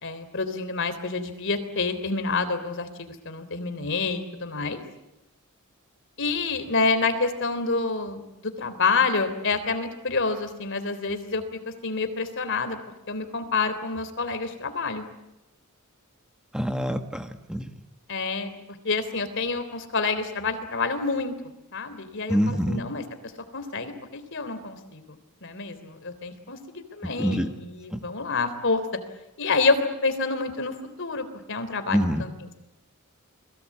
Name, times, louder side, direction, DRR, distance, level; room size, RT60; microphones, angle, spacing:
voice 1, 0.0-4.8 6.2-12.8 13.1-15.1 18.1-18.5 18.8-21.3 21.7-23.0 23.5-25.0 25.4-29.0 29.4-32.3, left 4 dB, 55° left, 10 dB, 3.5 m, -28 dB
voice 2, 16.5-17.7 22.3-22.8 27.0-27.5 27.9-28.0 31.9-32.2, equal, 5° right, 7 dB, 1.5 m, -26 dB
29.5 x 22.0 x 8.6 m, 0.92 s
head